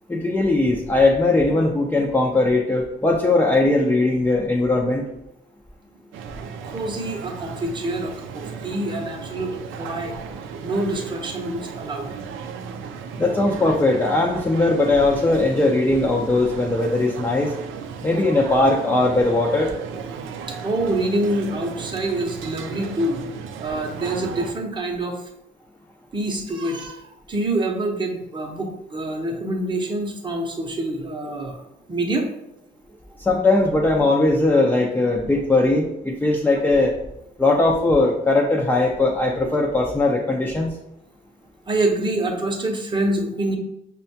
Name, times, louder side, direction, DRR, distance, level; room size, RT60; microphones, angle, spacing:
voice 1, 0.1-5.1 13.2-17.5 18.0-19.7 33.2-36.9 37.4-40.7, left 2 dB, 10° left, -1 dB, 0.4 m, -19 dB
sound 1, 6.1-24.5, right 6 dB, 80° right, 0.4 m, -35 dB
voice 2, 6.6-10.2 10.6-12.1 20.6-23.2 23.6-25.2 26.1-32.3 34.5-34.6 41.7-43.6, right 1 dB, 25° right, 1 dB, 0.7 m, -26 dB
5.3 x 2.2 x 2.7 m, 0.82 s
cardioid pair, 90°, 20 cm